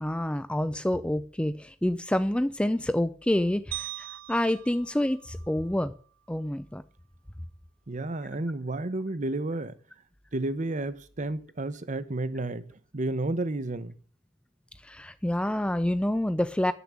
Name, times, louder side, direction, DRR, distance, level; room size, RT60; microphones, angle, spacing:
voice 1, 0.0-5.9 6.3-6.8 14.8-16.7, left 1 dB, 5° left, 0.4 m, -27 dB
sound 1, 3.7-6.1, right 18 dB, 65° right, 0.4 m, -41 dB
voice 2, 7.9-9.7 10.3-13.9, right 2 dB, 40° right, 0.8 m, -31 dB
10.5 x 7.0 x 7.4 m
head